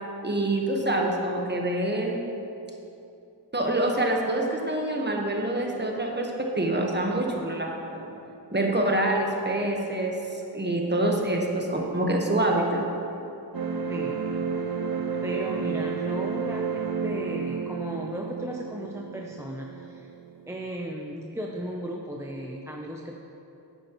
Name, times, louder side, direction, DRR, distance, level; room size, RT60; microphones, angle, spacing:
voice 1, 0.2-2.3 3.5-8.1 8.5-12.8, right 1 dB, 25° right, 0 dB, 1.1 m, -26 dB
sound 1, 13.5-20.5, right 5 dB, 55° right, 0.7 m, -31 dB
voice 2, 13.9-14.2 15.2-20.1 20.5-23.2, equal, 5° right, -1 dB, 0.6 m, -36 dB
9.5 x 8.8 x 3.0 m, 2.9 s
wide cardioid pair, 50°, 43 cm